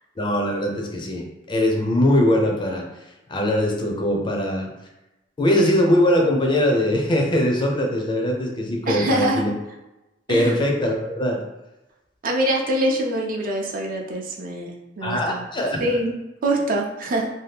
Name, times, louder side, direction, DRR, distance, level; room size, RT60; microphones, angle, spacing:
voice 1, 0.2-2.9 3.3-4.7 5.4-9.5 10.3-11.4 15.0-15.8, left 1 dB, 25° left, 1 dB, 0.5 m, -21 dB
voice 2, 8.9-9.4 10.3-10.5 12.2-15.4 15.8-16.2 16.4-17.3, right 1 dB, 45° right, 0 dB, 0.5 m, -24 dB
2.7 x 2.2 x 3.4 m, 0.98 s
head